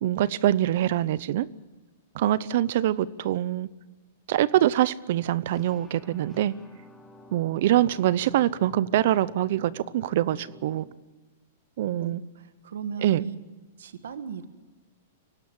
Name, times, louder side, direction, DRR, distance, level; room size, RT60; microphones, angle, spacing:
voice 1, 0.0-1.5 2.1-3.7 4.3-6.5 7.3-10.9 11.8-12.2 13.0-13.3, right 13 dB, 60° right, 20 dB, 0.7 m, -24 dB
sound 1, 5.5-10.9, left 2 dB, 10° left, 1.7 m, -51 dB
voice 2, 12.0-13.4 13.8-14.4, right 7 dB, 85° right, 11 dB, 1.6 m, -37 dB
24.5 x 17.5 x 7.2 m, 1.2 s
hypercardioid pair, 150°, 0 cm